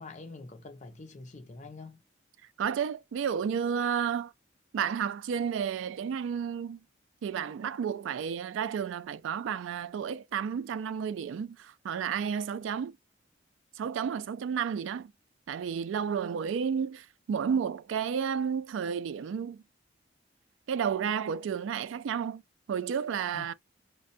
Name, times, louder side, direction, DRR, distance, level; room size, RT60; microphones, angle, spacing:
voice 1, 0.0-2.0 23.3-23.5, left 3 dB, 40° left, 0.5 m, -45 dB
voice 2, 2.6-4.3 4.7-6.8 7.2-12.9 13.8-15.1 15.5-19.6 20.7-22.4 22.7-23.5, right 7 dB, 90° right, 0.3 m, -31 dB
2.5 x 2.1 x 2.5 m
head